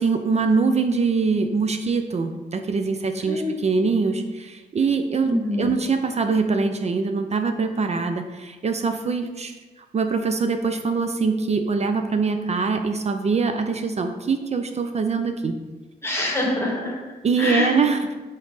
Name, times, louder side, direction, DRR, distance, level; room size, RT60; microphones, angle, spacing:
voice 1, 0.0-9.5 9.9-15.6 17.2-18.1, right 4 dB, 40° right, 7 dB, 0.4 m, -23 dB
voice 2, 3.3-3.6 5.2-5.7 16.0-17.8, left 1 dB, 15° left, -2 dB, 1.3 m, -25 dB
4.0 x 4.0 x 3.2 m, 1.2 s
cardioid pair, 75°, 17 cm